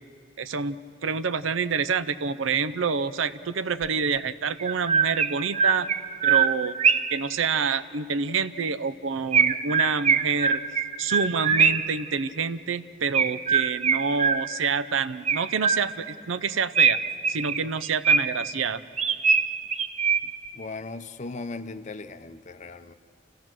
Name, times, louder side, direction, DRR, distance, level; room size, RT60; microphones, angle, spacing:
voice 1, 0.4-5.9 6.2-10.6 11.0-17.0 17.3-18.8, right 5 dB, 80° right, 13 dB, 0.6 m, -27 dB
Chirp tweet, 3.8-3.9 4.6-7.2 9.3-12.0 13.1-14.7 15.3-16.1 16.7-18.5 19.0-20.5, right 6 dB, 35° right, 0.6 m, -23 dB
voice 2, 20.2-22.9, left 3 dB, 40° left, 11 dB, 0.6 m, -38 dB
27.5 x 15.0 x 6.2 m, 2.3 s
head